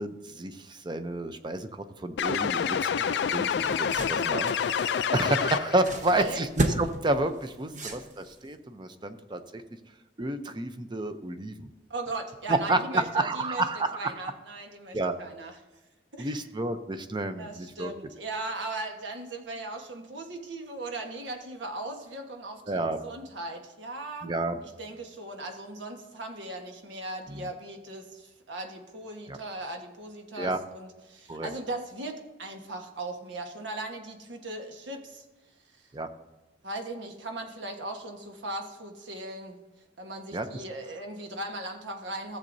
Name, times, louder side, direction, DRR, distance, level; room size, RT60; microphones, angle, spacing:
voice 1, 0.0-9.6 10.2-11.7 12.5-14.2 14.9-15.1 16.2-17.9 22.7-23.0 24.2-24.6 27.3-27.5 29.3-29.4 30.4-30.6 31.3-31.5 35.9-36.1 40.3-40.5, right 2 dB, 25° right, 9 dB, 0.6 m, -30 dB
sound 1, 2.2-6.0, left 7 dB, 65° left, 0.3 m, -27 dB
sound 2, 3.1-8.5, right 1 dB, 40° right, 1.0 m, -35 dB
voice 2, 6.1-6.5 7.7-7.9 8.8-9.0 11.9-13.6 13.9-15.6 16.1-16.4 17.3-24.3 24.6-35.2 36.6-39.6 40.0-42.4, right 2 dB, 85° right, 4 dB, 1.3 m, -38 dB
15.0 x 7.6 x 2.7 m, 1.1 s
head